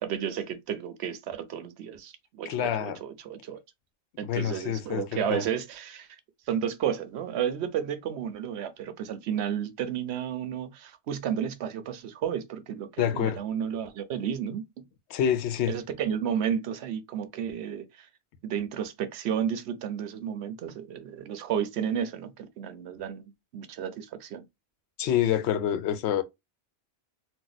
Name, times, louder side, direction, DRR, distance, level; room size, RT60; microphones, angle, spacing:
voice 1, 0.0-3.6 4.2-6.2 6.5-14.9 15.7-18.1 18.4-24.4, right 8 dB, 70° right, 0.8 m, -32 dB
voice 2, 2.5-3.0 4.2-5.5 13.0-13.4 15.1-15.8 25.0-26.2, left 10 dB, 75° left, 0.8 m, -27 dB
2.7 x 2.1 x 3.9 m
omnidirectional pair, 1.2 m